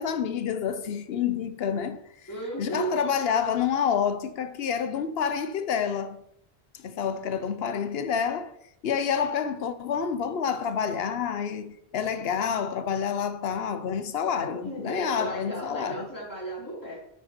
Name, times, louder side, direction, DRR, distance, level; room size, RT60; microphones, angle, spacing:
voice 1, 0.0-6.2 6.7-8.6 8.8-16.1, left 7 dB, 70° left, 0.9 m, -28 dB
voice 2, 2.3-3.1 14.6-17.0, right 2 dB, 15° left, 4.1 m, -34 dB
9.2 x 6.6 x 4.4 m
omnidirectional pair, 1.1 m